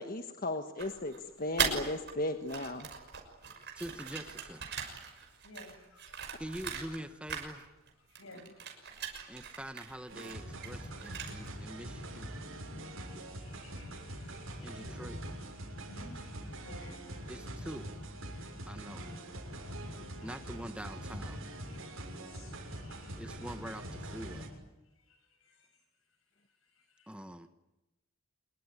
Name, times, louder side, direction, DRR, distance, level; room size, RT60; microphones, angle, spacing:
voice 1, 0.0-2.9 19.9-20.1, left 1 dB, 45° left, 6 dB, 1.4 m, -36 dB
sound 1, 0.8-2.1 2.4-7.0 7.3-11.6, right 6 dB, 55° right, 6.2 m, -39 dB
voice 2, 3.8-4.6 6.4-7.6 9.3-12.2 14.6-15.2 17.3-17.9 18.7-19.1 20.2-21.4 23.2-24.5 27.1-27.5, equal, 5° right, 9 dB, 1.2 m, -44 dB
voice 3, 5.4-5.8 6.5-6.6 8.2-8.4 13.5-14.0 14.3-14.9 15.9-16.1 16.6-17.0 17.3-17.4 18.1-18.2 19.7-20.3 21.7-21.8 22.4-22.5 22.8-23.0, left 1 dB, 75° left, 7 dB, 7.7 m, -53 dB
sound 2, 10.1-24.5, right 1 dB, 75° right, 6.8 m, -43 dB
27.0 x 22.5 x 9.7 m, 0.95 s
head